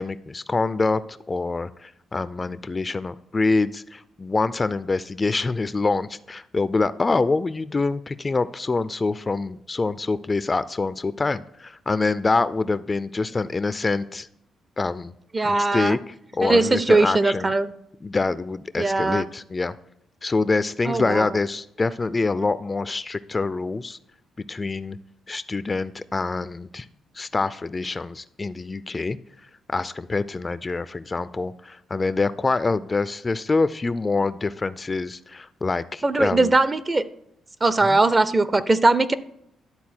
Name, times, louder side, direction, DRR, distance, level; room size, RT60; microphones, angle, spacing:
voice 1, 0.0-14.3 14.8-15.1 15.4-17.5 18.0-19.7 20.2-24.0 24.5-25.0 25.3-26.9 27.1-36.5 37.9-38.0, left 3 dB, 30° left, 15 dB, 0.3 m, -25 dB
voice 2, 15.3-16.0 16.4-17.7 18.8-19.2 20.8-21.3 22.4-22.5 36.0-37.0 37.6-39.1, right 2 dB, 25° right, 15 dB, 0.5 m, -20 dB
11.5 x 4.0 x 4.4 m, 0.78 s
cardioid pair, 75°, 0 cm